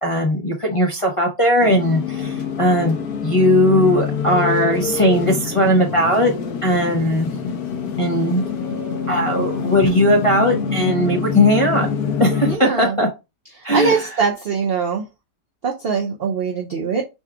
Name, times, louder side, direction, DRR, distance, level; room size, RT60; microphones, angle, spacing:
voice 1, 0.0-3.0 3.2-6.3 6.6-7.3 8.0-8.4 9.1-11.9 12.2-13.1 13.6-14.2, left 1 dB, 30° left, -1 dB, 0.6 m, -18 dB
sound 1, 1.6-12.6, left 6 dB, 65° left, 1.1 m, -25 dB
voice 2, 12.5-12.9 13.7-15.0 15.6-17.0, right 5 dB, 65° right, 0 dB, 0.6 m, -22 dB
4.1 x 2.3 x 4.6 m, 0.24 s
omnidirectional pair, 1.8 m